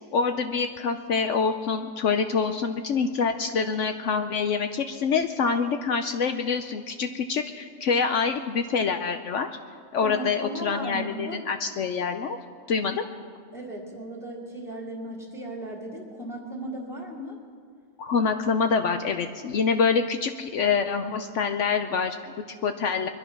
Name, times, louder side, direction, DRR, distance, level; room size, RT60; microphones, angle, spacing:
voice 1, 0.1-9.5 9.9-12.4 12.7-13.0 18.0-23.1, left 5 dB, 65° left, 7 dB, 0.9 m, -26 dB
voice 2, 10.0-11.4 13.5-17.4, right 1 dB, 5° left, -2 dB, 2.0 m, -36 dB
22.5 x 11.0 x 5.9 m, 2.1 s
omnidirectional pair, 1.5 m